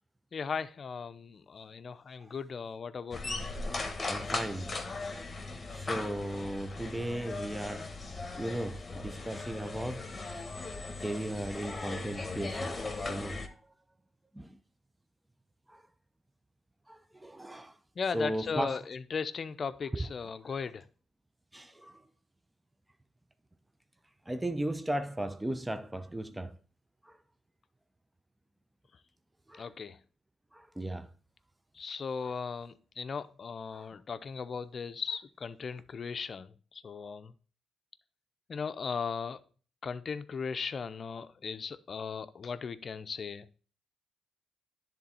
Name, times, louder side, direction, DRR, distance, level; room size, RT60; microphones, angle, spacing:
voice 1, 0.3-3.4 18.0-20.8 29.6-30.0 31.8-36.5 36.7-37.3 38.5-39.4 39.8-43.5, left 5 dB, 50° left, 0.5 m, -37 dB
sound 1, 3.1-13.5, left 3 dB, 25° left, 1.3 m, -38 dB
voice 2, 4.1-4.8 5.7-7.9 8.3-10.1 11.0-13.6 14.3-14.6 15.7-15.8 16.9-17.7 18.1-18.8 19.9-20.1 21.5-21.9 24.3-26.6 27.1-27.2 29.5-29.6 30.5-31.1 32.2-32.3 33.7-33.9, right 1 dB, 10° right, 0.5 m, -36 dB
10.0 x 3.8 x 4.2 m
supercardioid pair, 70°, 0 cm